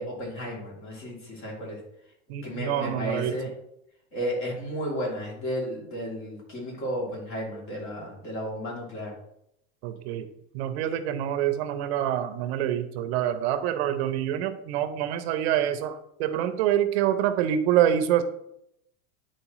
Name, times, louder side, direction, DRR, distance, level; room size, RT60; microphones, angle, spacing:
voice 1, 0.0-1.8 2.4-3.5 4.1-9.1 10.9-11.0, equal, 35° left, -2 dB, 2.8 m, -33 dB
voice 2, 2.3-3.4 9.8-10.3 10.5-18.2, right 10 dB, 65° right, 10 dB, 0.7 m, -26 dB
9.8 x 4.4 x 3.0 m, 0.78 s
supercardioid pair, 140°, 34 cm